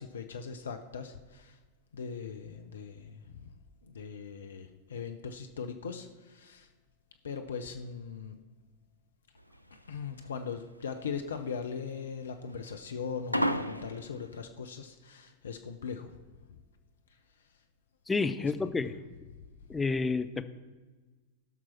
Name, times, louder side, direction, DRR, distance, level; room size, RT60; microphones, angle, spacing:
voice 1, 0.0-1.6 1.9-3.6 3.8-6.7 7.2-8.4 9.9-16.2 16.5-16.6 17.4-17.5 18.4-18.5 18.8-18.9 19.3-19.4, left 6 dB, 65° left, 6 dB, 0.6 m, -40 dB
sound 1, 9.4-14.4, equal, 90° right, 0.4 m, -34 dB
voice 2, 18.1-18.9 19.7-20.4, left 4 dB, 10° left, 9 dB, 0.5 m, -29 dB
16.0 x 6.1 x 4.4 m, 1.3 s
figure-of-eight pair, 90°, 0 cm